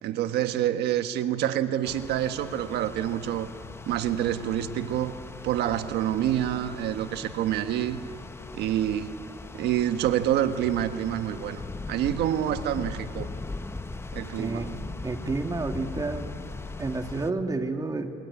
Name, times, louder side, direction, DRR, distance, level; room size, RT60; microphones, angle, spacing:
voice 1, 0.0-3.5 3.9-5.2 5.4-8.0 8.5-9.2 9.5-11.6 11.9-13.3 14.1-14.7, right 11 dB, 80° right, 9 dB, 1.3 m, -27 dB
sound 1, 1.8-17.3, left 3 dB, 15° left, 0.9 m, -40 dB
voice 2, 14.4-14.7 15.0-16.3 16.8-18.2, right 3 dB, 20° right, 5 dB, 2.2 m, -30 dB
27.5 x 22.0 x 9.9 m, 2.7 s
cardioid pair, 110°, 17 cm